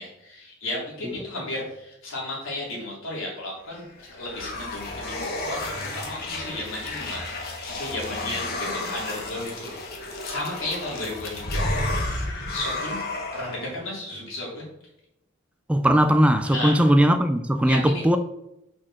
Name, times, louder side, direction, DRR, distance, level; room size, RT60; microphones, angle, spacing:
voice 1, 0.0-9.8 10.2-11.6 12.5-13.0 13.3-14.7 16.4-16.7 17.6-18.0, left 2 dB, 80° left, 3.1 m, -34 dB
sound 1, 3.7-13.7, left 2 dB, 50° left, 1.4 m, -32 dB
voice 2, 15.7-18.2, equal, 5° right, 0.4 m, -19 dB
6.3 x 4.4 x 6.0 m
head